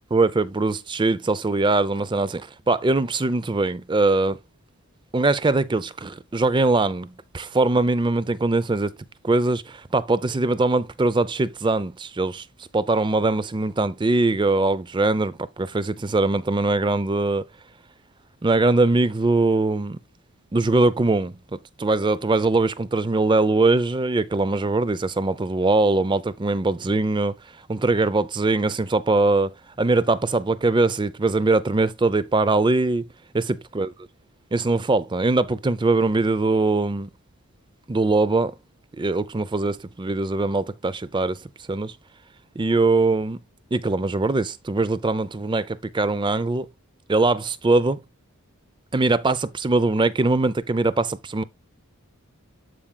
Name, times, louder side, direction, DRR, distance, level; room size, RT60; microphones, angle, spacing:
voice 1, 0.1-4.4 5.1-8.9 9.2-12.4 12.7-17.4 18.4-20.0 20.5-21.4 21.8-27.3 27.7-33.1 33.3-33.4 33.7-33.9 34.5-37.1 37.9-38.5 38.9-41.4 41.7-41.9 42.6-43.4 43.7-46.7 47.1-48.0 48.9-51.4, right 2 dB, 20° right, 0.4 m, -22 dB
13.0 x 4.9 x 2.2 m
head